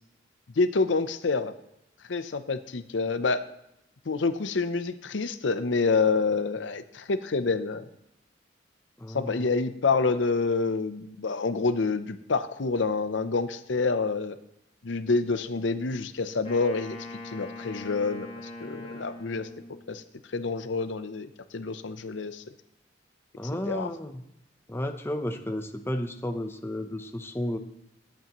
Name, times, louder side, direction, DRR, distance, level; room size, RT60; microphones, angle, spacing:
voice 1, 0.6-1.5 2.1-3.4 4.1-7.9 9.1-14.4 14.8-17.0 17.3-18.3 18.6-19.5 19.9-20.0 20.3-22.4 23.7-23.9, left 4 dB, 70° left, 11 dB, 0.6 m, -27 dB
voice 2, 9.0-9.5 23.4-24.2 24.7-27.6, left 1 dB, 10° left, 7 dB, 0.7 m, -32 dB
Wind instrument woodwind instrument, 16.4-19.9, left 2 dB, 35° left, 5.2 m, -42 dB
22.0 x 8.5 x 3.0 m, 0.82 s
head